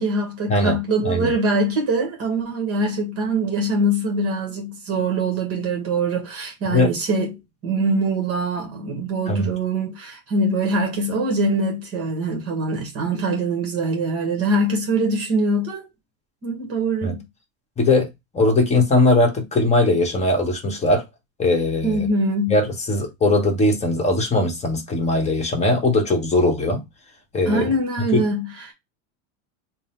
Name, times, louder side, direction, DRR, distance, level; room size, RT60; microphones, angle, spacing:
voice 1, 0.0-15.9 16.4-17.2 21.8-22.6 27.5-28.7, right 2 dB, 35° right, 1.2 m, -23 dB
voice 2, 17.8-21.0 21.4-22.1 22.5-26.8 27.3-27.7 28.1-28.2, left 2 dB, 15° left, 1.0 m, -20 dB
3.8 x 2.1 x 4.2 m
supercardioid pair, 140°, 42 cm